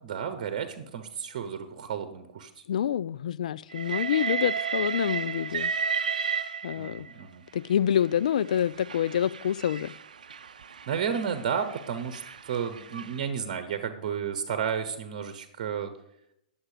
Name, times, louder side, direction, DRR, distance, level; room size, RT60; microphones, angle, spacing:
voice 1, 0.0-2.6 6.8-7.4 10.9-15.9, right 7 dB, 55° right, 1.1 m, -32 dB
voice 2, 2.7-5.7 6.6-7.1 7.5-9.9, left 9 dB, 70° left, 0.3 m, -27 dB
Train, 3.7-7.1 8.0-13.2, right 6 dB, 80° right, 0.5 m, -33 dB
10.0 x 7.3 x 5.0 m
hypercardioid pair, 115°, 4 cm